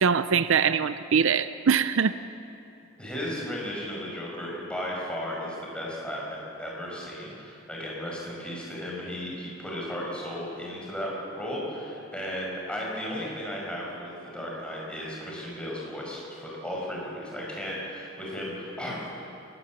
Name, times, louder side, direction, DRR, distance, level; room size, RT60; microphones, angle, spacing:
voice 1, 0.0-2.1, right 6 dB, 65° right, 13 dB, 0.5 m, -23 dB
voice 2, 3.0-19.2, equal, 5° left, -4 dB, 5.2 m, -35 dB
23.0 x 19.0 x 7.3 m, 2.8 s
head